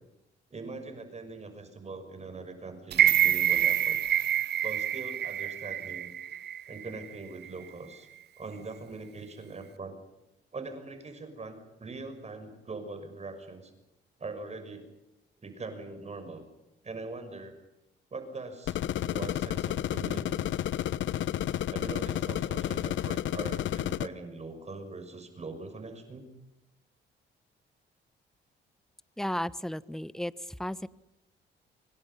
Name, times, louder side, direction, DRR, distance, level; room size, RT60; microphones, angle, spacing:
voice 1, 0.5-4.0 4.6-6.1 6.7-8.1 8.4-9.9 10.5-13.7 14.2-14.9 15.4-16.4 16.8-17.6 18.1-18.8 19.1-20.4 21.7-26.3, right 3 dB, 35° right, 7 dB, 6.1 m, -42 dB
sound 1, 2.9-7.0 7.4-7.5, right 10 dB, 55° right, 0.8 m, -26 dB
sound 2, 18.7-24.1, left 12 dB, 75° left, 1.0 m, -31 dB
voice 2, 29.2-30.9, left 1 dB, ahead, 16 dB, 1.1 m, -34 dB
28.0 x 24.0 x 5.7 m, 0.92 s
cardioid pair, 90°, 20 cm